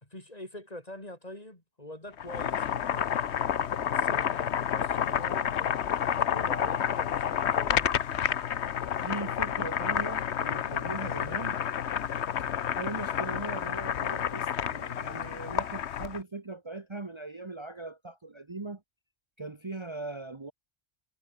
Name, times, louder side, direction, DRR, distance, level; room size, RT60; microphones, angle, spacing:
voice 1, 0.0-3.1 3.8-5.9 6.3-8.0, left 1 dB, 35° left, 5.0 m, -44 dB
Boiling, 2.1-16.2, left 9 dB, 70° left, 1.1 m, -30 dB
voice 2, 9.0-11.6 12.8-18.8 19.4-20.5, right 3 dB, 25° right, 1.3 m, -39 dB
omnidirectional pair, 1.2 m